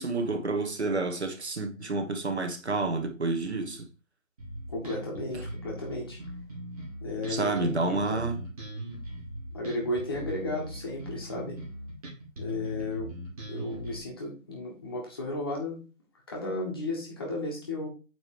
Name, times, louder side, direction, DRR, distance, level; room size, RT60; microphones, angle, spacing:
voice 1, 0.0-3.9 7.3-8.4, right 3 dB, 55° right, 1.5 m, -29 dB
Bass guitar, 4.4-14.0, right 1 dB, 25° right, 2.3 m, -40 dB
voice 2, 4.7-6.2 7.0-8.2 9.5-11.6 12.4-13.1 13.5-15.8 16.3-17.9, left 2 dB, 20° left, 1.3 m, -34 dB
8.7 x 3.4 x 4.9 m
figure-of-eight pair, 160°, 40 cm